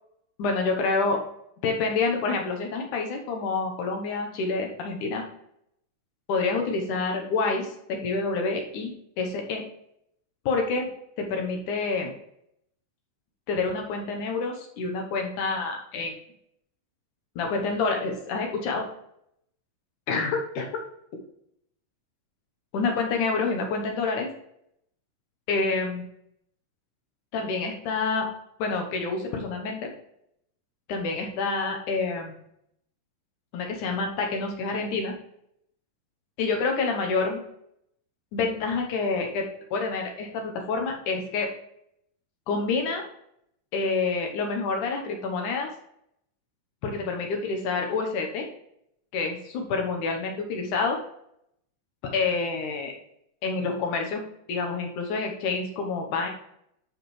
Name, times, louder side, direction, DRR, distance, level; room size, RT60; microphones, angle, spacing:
voice 1, 0.4-1.2 1.6-5.3 6.3-9.6 10.5-10.9 11.2-12.1 13.5-16.2 17.4-18.9 20.1-20.7 22.7-24.3 25.5-26.1 27.3-28.3 28.6-29.9 30.9-32.4 33.5-35.1 36.4-37.4 38.3-41.5 42.5-43.0 43.7-45.7 46.8-48.5 49.1-51.0 52.0-52.9 53.4-54.2 54.5-56.3, left 4 dB, 65° left, 2 dB, 2.3 m, -28 dB
12.5 x 4.7 x 3.2 m, 0.75 s
omnidirectional pair, 4.1 m